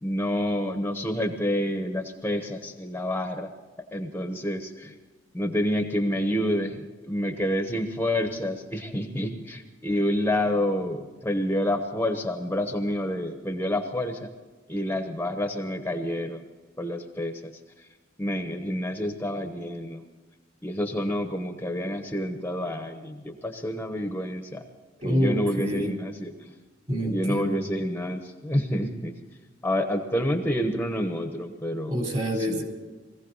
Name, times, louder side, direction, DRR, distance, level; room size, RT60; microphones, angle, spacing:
voice 1, 0.0-3.5 3.9-5.0 5.3-14.3 14.7-16.5 16.8-17.6 18.2-20.0 20.6-24.6 25.0-26.5 27.0-29.1 29.6-31.9 32.4-32.6, left 1 dB, 10° left, 4 dB, 1.1 m, -28 dB
voice 2, 25.0-26.0 26.9-27.6 31.9-32.6, equal, 40° right, 1 dB, 3.7 m, -27 dB
21.5 x 15.5 x 4.1 m, 1.3 s
head